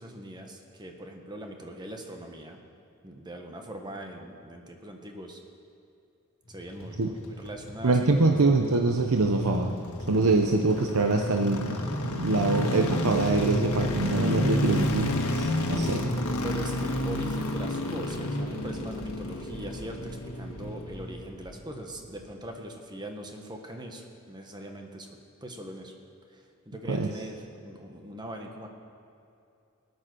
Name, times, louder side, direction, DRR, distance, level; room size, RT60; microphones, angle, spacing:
voice 1, 0.0-2.6 3.0-5.4 6.5-8.0 8.2-8.4 16.4-25.1 25.4-25.9 26.3-28.7, right 1 dB, 20° right, 3 dB, 1.3 m, -41 dB
sound 1, 6.5-21.7 22.0-22.1, left 1 dB, 80° left, 1.5 m, -31 dB
voice 2, 7.8-9.8 10.1-11.8 12.1-16.1 26.9-27.1, right 3 dB, 85° right, 3 dB, 0.8 m, -24 dB
18.0 x 9.5 x 6.2 m, 2.6 s
head